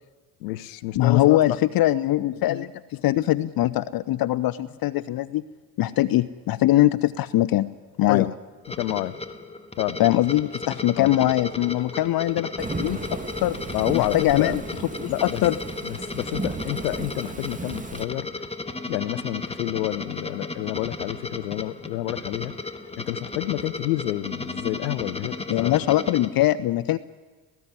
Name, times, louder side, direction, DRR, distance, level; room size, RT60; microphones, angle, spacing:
voice 1, 0.4-1.4 8.1-8.3 8.8-9.1 9.8-10.0 11.0-11.1 13.7-14.6 15.1-15.4 15.8-18.3 18.8-22.5 23.0-25.8, left 17 dB, 75° left, 17 dB, 0.9 m, -29 dB
voice 2, 0.9-5.4 5.8-7.7 8.0-8.3 10.0-12.5 12.8-13.0 13.4-13.6 13.9-14.6 15.0-15.5 25.5-27.0, left 15 dB, 45° left, 16 dB, 0.7 m, -22 dB
sound 1, 8.7-26.3, left 3 dB, 10° left, 1.7 m, -35 dB
Thunderstorm / Rain, 12.6-18.0, right 3 dB, 15° right, 1.8 m, -34 dB
18.5 x 16.5 x 9.7 m, 1.3 s
hypercardioid pair, 65°, 50 cm